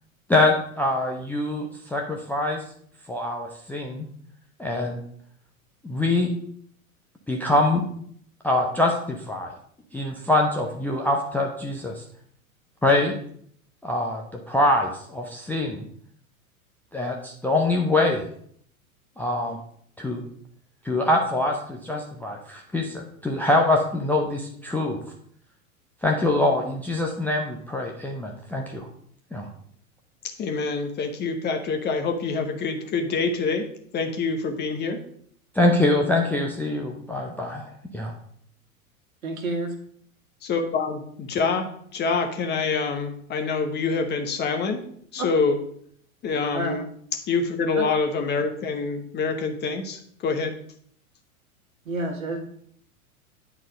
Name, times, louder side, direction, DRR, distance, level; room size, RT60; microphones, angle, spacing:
voice 1, 0.3-2.6 3.1-4.1 4.6-5.0 5.8-6.3 7.3-7.8 8.4-9.5 9.9-12.0 12.8-13.1 13.8-15.9 16.9-18.2 19.2-19.6 20.0-20.2 20.8-25.0 26.0-28.9 29.3-29.5 35.5-37.7 37.9-38.1, left 2 dB, 5° left, 0 dB, 0.5 m, -24 dB
voice 2, 30.4-33.6 33.9-35.0 40.4-44.8 45.1-45.5 46.2-46.8 47.3-50.5, left 4 dB, 25° left, 5 dB, 0.9 m, -26 dB
voice 3, 39.2-39.8 46.5-46.8 47.8-47.9 51.9-52.5, right 2 dB, 70° right, 4 dB, 1.9 m, -29 dB
9.1 x 4.1 x 5.1 m, 0.64 s
figure-of-eight pair, 95°, 43 cm